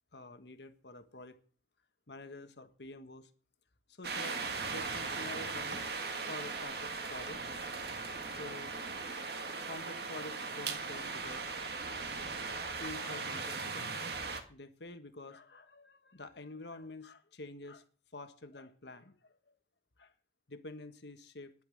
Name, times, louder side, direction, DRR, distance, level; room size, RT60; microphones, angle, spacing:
voice 1, 0.1-1.4 2.1-3.3 3.9-5.8 6.3-7.5 8.3-8.7 9.6-12.0 12.8-13.9 14.5-17.8 18.1-19.5 20.0-20.1 20.5-21.5, left 2 dB, 70° left, 9 dB, 1.5 m, -48 dB
sound 1, 4.0-14.4, right 4 dB, 60° right, 1.7 m, -38 dB
10.5 x 8.5 x 7.7 m, 0.41 s
head